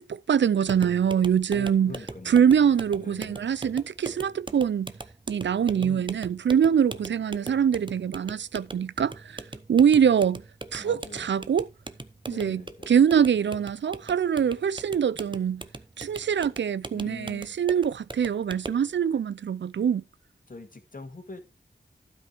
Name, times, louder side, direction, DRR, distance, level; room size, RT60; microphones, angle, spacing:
voice 1, 0.0-1.9 2.3-4.9 5.3-9.4 9.7-10.4 10.7-11.7 12.3-15.6 16.0-20.0, right 8 dB, 85° right, 0.4 m, -24 dB
sound 1, 0.7-18.9, right 2 dB, 25° right, 0.8 m, -41 dB
voice 2, 1.5-2.5 3.0-3.4 5.7-6.1 10.8-11.6 12.3-12.9 16.9-17.6 20.5-21.4, left 3 dB, 50° left, 2.1 m, -43 dB
12.0 x 5.3 x 4.7 m
wide cardioid pair, 60°, 18 cm